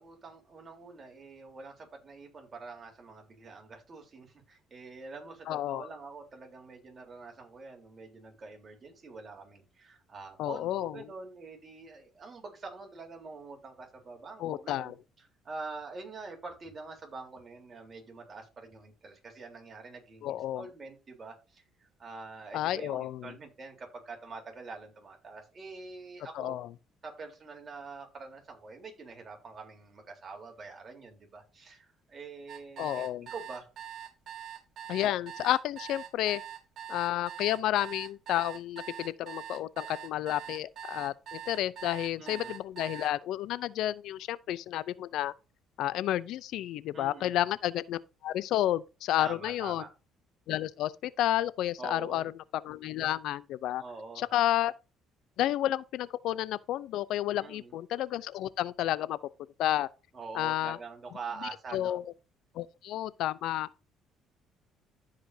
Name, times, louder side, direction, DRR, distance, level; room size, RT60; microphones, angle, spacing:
voice 1, 0.0-26.6 27.0-33.7 42.2-42.5 46.9-47.3 49.2-49.9 51.8-52.2 53.8-54.2 57.3-57.7 60.1-62.0, right 4 dB, 40° right, 3.5 m, -45 dB
voice 2, 5.5-5.9 10.4-11.1 14.4-14.9 20.2-20.7 22.5-23.3 26.4-26.7 32.8-33.3 34.9-36.4 36.9-45.3 45.8-49.8 50.5-53.8 54.2-54.7 55.4-59.2 59.6-59.9 60.3-60.8 61.7-62.0 62.5-63.7, left 13 dB, 75° left, 0.4 m, -31 dB
sound 1, 32.5-43.1, right 10 dB, 60° right, 2.0 m, -43 dB
14.5 x 5.0 x 2.7 m
supercardioid pair, 85°, 0 cm